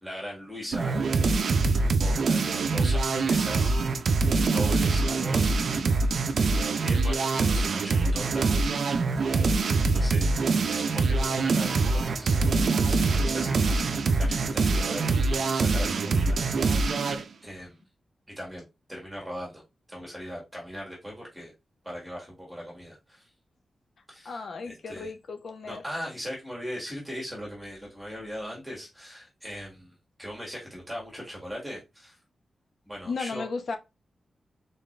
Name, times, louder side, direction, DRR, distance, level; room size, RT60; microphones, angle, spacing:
voice 1, 0.0-1.5 1.8-2.4 2.7-4.1 4.5-6.5 6.8-17.8 18.4-18.6 18.9-19.6 19.9-21.5 21.8-23.3 24.1-25.1 25.6-32.2 32.9-33.4, equal, 5° right, 1.8 m, -40 dB
sound 1, 0.7-17.2, right 3 dB, 70° right, 0.5 m, -24 dB
voice 2, 24.2-25.8 33.0-33.8, left 4 dB, 65° left, 0.9 m, -35 dB
4.0 x 4.0 x 3.3 m
wide cardioid pair, 165°, 0 cm